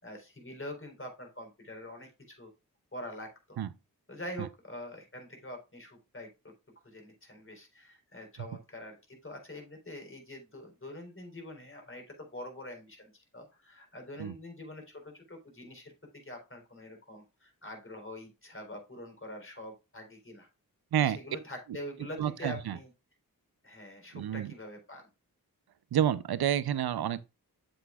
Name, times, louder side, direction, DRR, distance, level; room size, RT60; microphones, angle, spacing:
voice 1, 0.0-2.5 2.9-3.6 4.1-6.5 6.8-15.9 16.2-20.5 21.0-22.9 23.6-25.1, left 1 dB, 35° left, 4.0 m, -45 dB
voice 2, 22.2-22.8 24.1-24.5 25.9-27.2, right 10 dB, 85° right, 0.6 m, -29 dB
8.1 x 7.8 x 2.4 m
cardioid pair, 45°, 37 cm